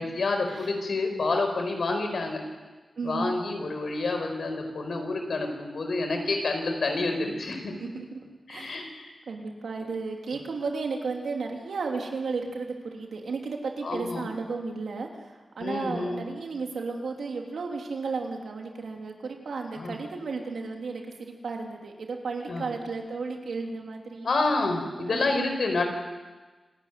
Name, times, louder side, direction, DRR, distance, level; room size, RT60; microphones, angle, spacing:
voice 1, 0.0-2.4 3.0-7.7 8.5-9.1 13.8-14.2 15.6-16.2 19.8-20.0 22.5-22.6 24.2-25.8, left 3 dB, 75° left, 4 dB, 4.7 m, -28 dB
voice 2, 3.0-3.3 7.8-8.8 9.3-24.3 25.0-25.5, right 4 dB, 90° right, 1 dB, 3.2 m, -34 dB
27.0 x 12.5 x 9.4 m, 1.3 s
wide cardioid pair, 70°, 0 cm